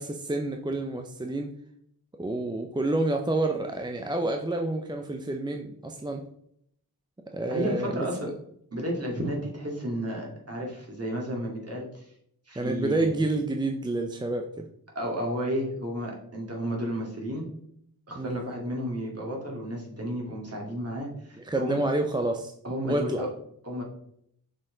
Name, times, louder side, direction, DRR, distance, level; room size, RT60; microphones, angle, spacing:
voice 1, 0.0-1.5 2.2-6.2 7.3-8.3 12.6-14.7 18.2-18.4 21.4-22.5 22.8-23.2, right 2 dB, 10° right, 3 dB, 0.5 m, -29 dB
voice 2, 7.5-8.3 8.7-12.1 12.5-13.2 14.9-17.5 18.1-21.8 22.6-23.3 23.6-23.8, equal, 40° right, -2 dB, 2.1 m, -32 dB
6.4 x 4.3 x 3.8 m, 0.71 s
wide cardioid pair, 80°, 38 cm